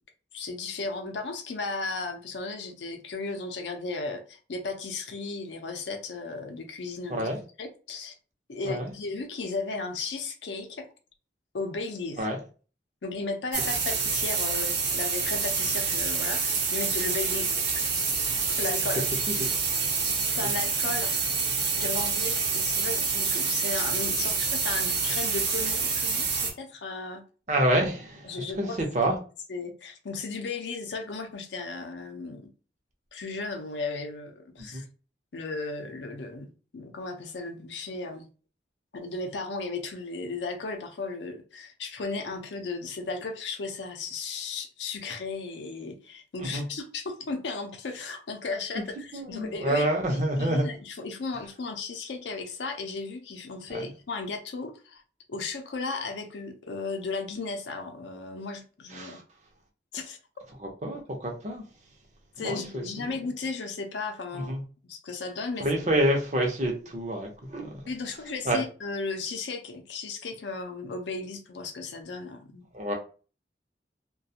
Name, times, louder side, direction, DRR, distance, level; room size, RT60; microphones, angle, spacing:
voice 1, 0.3-7.3 7.6-8.1 8.5-10.9 11.5-12.3 13.0-17.6 18.6-19.0 20.4-21.1 21.8-27.2 28.2-28.8 29.5-32.5 33.1-34.8 35.3-38.3 38.9-55.0 55.3-59.2 59.9-60.2 62.4-64.5 64.9-65.7 67.9-72.7, left 3 dB, 85° left, 0.5 m, -35 dB
sound 1, 13.5-26.5, right 5 dB, 80° right, 0.8 m, -27 dB
voice 2, 27.5-29.2 34.7-34.8 46.5-46.6 48.7-48.8 49.1-50.7 53.7-53.9 58.9-59.2 60.8-61.6 62.4-63.1 64.3-64.6 65.6-67.7 68.4-68.6 72.7-72.9, right 1 dB, 40° right, 0.6 m, -28 dB
2.4 x 2.2 x 2.7 m
head